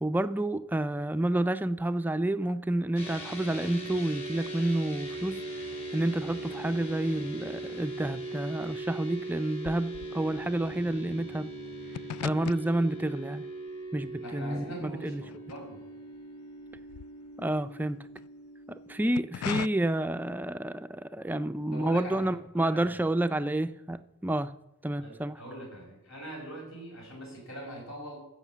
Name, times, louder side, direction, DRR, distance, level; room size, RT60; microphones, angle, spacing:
voice 1, 0.0-5.4 5.9-11.5 12.2-13.5 13.9-15.2 17.4-18.0 18.7-24.5 24.8-25.4, right 1 dB, 10° right, 0.3 m, -29 dB
sound 1, 3.0-20.4, right 2 dB, 30° left, 2.7 m, -40 dB
sound 2, 8.8-16.2 16.5-18.3 18.9-19.7, left 9 dB, 90° left, 0.3 m, -42 dB
voice 2, 14.2-15.8 21.7-23.0 25.0-28.2, right 1 dB, 60° left, 5.3 m, -42 dB
14.5 x 5.7 x 7.3 m
head